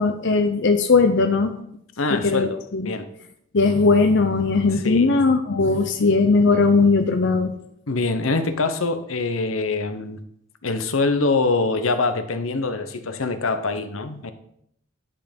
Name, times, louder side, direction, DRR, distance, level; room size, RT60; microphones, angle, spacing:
voice 1, 0.0-1.5 2.1-2.9 3.5-7.5, left 3 dB, 60° left, 6 dB, 0.7 m, -19 dB
voice 2, 2.0-3.1 4.7-5.1 7.9-10.2 10.6-14.3, left 3 dB, 85° left, 9 dB, 1.0 m, -24 dB
10.5 x 5.6 x 5.2 m, 0.71 s
head